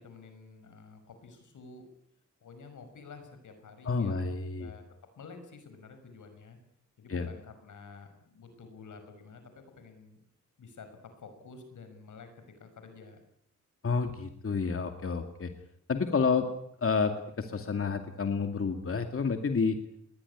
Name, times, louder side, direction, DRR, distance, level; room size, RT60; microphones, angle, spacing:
voice 1, 0.0-1.9 2.4-4.2 4.6-4.8 5.2-6.6 7.0-10.2 10.6-13.2, left 4 dB, 90° left, 8 dB, 6.1 m, -50 dB
voice 2, 3.8-4.7 7.1-7.3 13.8-15.5 15.9-16.5 16.8-19.8, left 5 dB, 50° left, 6 dB, 2.4 m, -29 dB
21.0 x 20.0 x 10.0 m, 0.70 s
wide cardioid pair, 90°, 30 cm